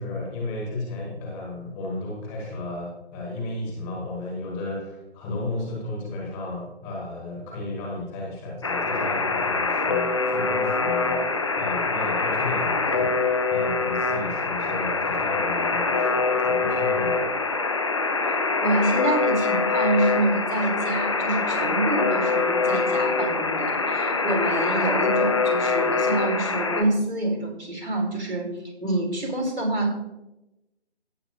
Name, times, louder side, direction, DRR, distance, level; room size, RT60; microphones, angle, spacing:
voice 1, 0.0-17.4, left 2 dB, 5° left, -2 dB, 1.3 m, -34 dB
Alarm, 8.6-26.8, left 4 dB, 25° left, 0.7 m, -24 dB
voice 2, 18.6-28.5 28.8-29.9, right 2 dB, 90° right, -1 dB, 4.2 m, -26 dB
16.5 x 7.4 x 2.7 m, 0.95 s
figure-of-eight pair, 155°, 33 cm